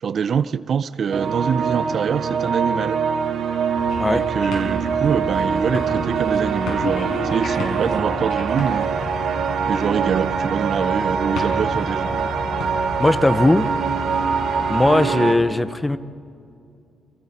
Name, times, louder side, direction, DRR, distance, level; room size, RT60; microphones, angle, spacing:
voice 1, 0.0-3.0 4.1-9.0 9.7-12.3, right 7 dB, 50° right, 0.5 m, -24 dB
sound 1, 1.1-15.3, right 6 dB, 70° right, 1.9 m, -24 dB
sound 2, 3.8-14.9, left 3 dB, 80° left, 6.9 m, -32 dB
voice 2, 13.0-13.7 14.7-16.0, left 2 dB, 10° left, 0.7 m, -18 dB
28.5 x 25.5 x 4.3 m
cardioid pair, 140°, 0 cm